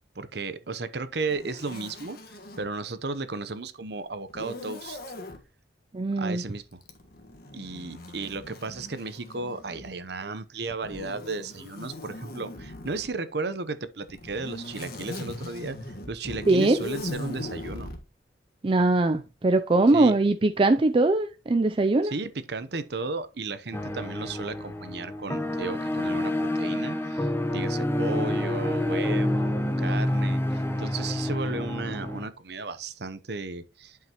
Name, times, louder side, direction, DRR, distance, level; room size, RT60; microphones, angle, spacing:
voice 1, 0.1-5.0 6.1-6.8 7.5-17.9 19.9-20.1 22.1-34.0, right 3 dB, 60° right, 0.8 m, -34 dB
Zipper (clothing), 1.3-2.7 4.3-5.4 6.8-10.0 10.8-13.1 14.0-18.0, left 1 dB, 55° left, 1.5 m, -39 dB
voice 2, 5.9-6.4 16.5-16.8 18.6-22.1, right 2 dB, 30° right, 0.4 m, -21 dB
sound 1, 23.7-32.3, left 1 dB, 15° left, 0.8 m, -28 dB
10.5 x 5.7 x 3.0 m
head